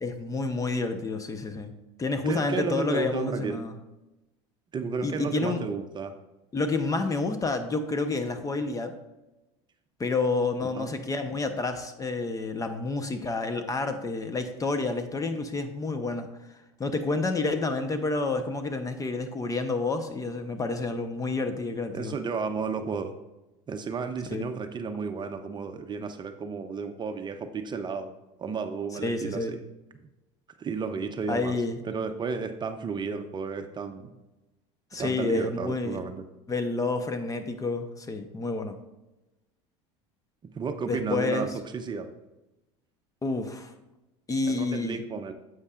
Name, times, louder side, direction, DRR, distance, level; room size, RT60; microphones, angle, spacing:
voice 1, 0.0-3.7 5.0-5.6 6.5-8.9 10.0-16.3 16.8-22.1 24.3-24.4 29.0-29.6 31.3-31.8 34.9-36.0 36.5-38.8 40.9-41.5 43.2-43.7 44.3-45.0, left 3 dB, 20° left, 8 dB, 0.9 m, -29 dB
voice 2, 2.2-3.6 4.7-6.1 10.8-10.9 21.9-23.1 23.7-28.1 28.4-29.6 30.6-31.5 31.8-34.1 35.0-36.2 40.5-41.5 41.7-42.1 44.4-45.3, right 5 dB, 30° right, 7 dB, 0.7 m, -32 dB
9.6 x 8.0 x 2.5 m, 1.0 s
hypercardioid pair, 90°, 15 cm